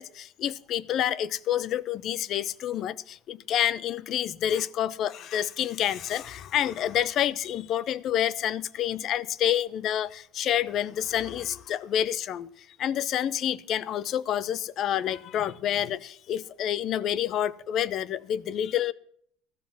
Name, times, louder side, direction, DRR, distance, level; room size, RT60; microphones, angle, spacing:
voice 1, 0.0-12.5 12.8-18.9, left 10 dB, 40° left, 0.4 m, -28 dB
13.5 x 7.1 x 7.2 m
cardioid pair, 165°, 0 cm